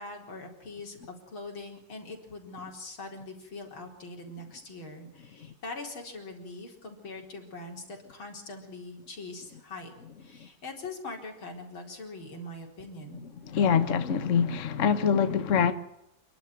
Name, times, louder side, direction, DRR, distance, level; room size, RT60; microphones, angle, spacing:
voice 1, 0.0-9.9 10.2-13.2, left 2 dB, 90° left, 5.0 m, -42 dB
voice 2, 13.4-15.7, left 7 dB, 45° left, 1.4 m, -24 dB
28.5 x 12.0 x 9.5 m
omnidirectional pair, 2.2 m